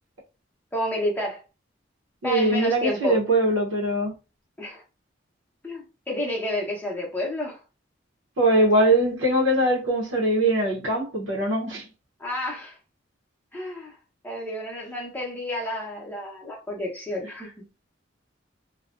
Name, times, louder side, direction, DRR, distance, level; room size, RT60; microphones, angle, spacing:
voice 1, 0.7-1.4 2.2-3.2 4.6-4.8 5.6-7.6 12.2-12.8 13.5-13.9 14.2-17.5, left 1 dB, 10° left, 0.8 m, -30 dB
voice 2, 2.2-4.1 8.4-11.9, right 1 dB, 80° right, 0.7 m, -22 dB
2.4 x 2.1 x 2.4 m
head